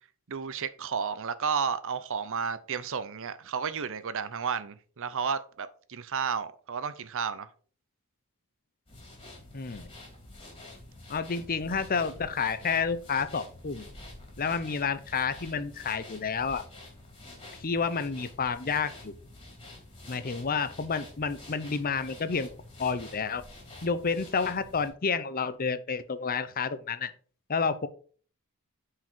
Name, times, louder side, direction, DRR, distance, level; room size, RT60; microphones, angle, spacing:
voice 1, 0.3-7.5, right 6 dB, 60° right, 0.7 m, -32 dB
sound 1, 8.9-24.9, left 2 dB, 25° left, 3.2 m, -48 dB
voice 2, 9.5-9.9 11.1-13.8 14.4-16.6 17.6-19.1 20.1-22.5 22.8-23.4 23.8-27.1 27.5-27.9, left 5 dB, 40° left, 0.7 m, -30 dB
9.2 x 4.9 x 4.5 m
head